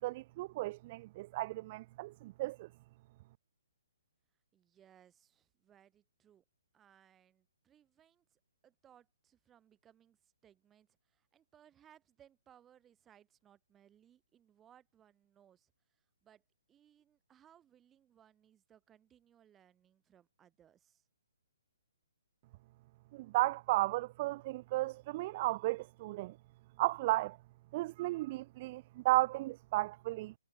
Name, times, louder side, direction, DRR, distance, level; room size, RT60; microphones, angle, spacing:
voice 1, 0.0-2.7 23.1-26.3 26.8-27.4 27.7-30.3, right 19 dB, 30° right, 0.4 m, -34 dB
voice 2, 4.5-6.4 6.7-21.1, right 10 dB, 15° right, 6.1 m, -66 dB
figure-of-eight pair, 130°, 0 cm